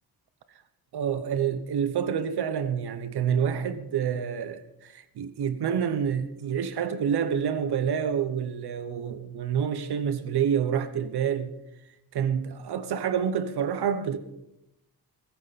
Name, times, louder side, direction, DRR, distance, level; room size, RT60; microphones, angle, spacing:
voice 1, 0.9-11.5 12.1-14.2, right 8 dB, 80° right, 1.0 m, -28 dB
22.5 x 13.5 x 4.2 m
wide cardioid pair, 165°, 39 cm